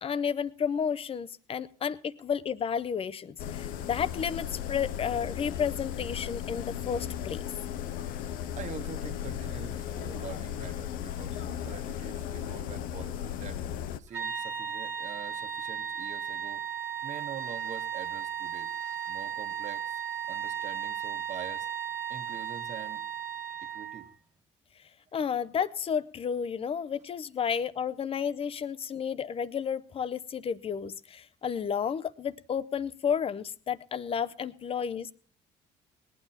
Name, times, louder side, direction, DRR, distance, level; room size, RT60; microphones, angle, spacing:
voice 1, 0.0-7.4 25.1-35.1, left 7 dB, 40° left, 16 dB, 0.7 m, -32 dB
sound 1, 3.4-14.0, left 10 dB, 75° left, 0.7 m, -36 dB
voice 2, 7.9-13.6 14.0-16.6 17.0-18.7 19.1-20.0 20.3-21.7 22.1-23.0 23.6-24.1, right 7 dB, 55° right, 8 dB, 1.5 m, -45 dB
sound 2, 14.1-24.1, right 8 dB, 20° right, 2.1 m, -35 dB
19.0 x 9.2 x 4.3 m, 0.40 s
supercardioid pair, 75°, 15 cm